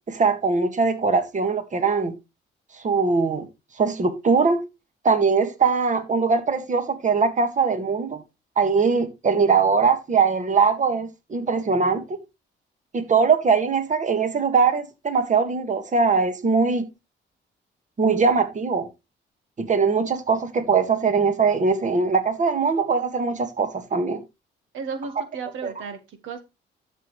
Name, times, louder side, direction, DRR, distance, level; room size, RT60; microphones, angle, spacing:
voice 1, 0.1-2.1 2.8-3.5 3.8-4.6 5.0-8.2 8.6-12.2 12.9-16.9 18.0-18.9 19.6-24.2 25.6-25.7, right 5 dB, 40° right, 1.8 m, -21 dB
voice 2, 24.7-26.4, right 5 dB, 80° right, 1.6 m, -34 dB
12.0 x 6.8 x 3.3 m
cardioid pair, 90°, 20 cm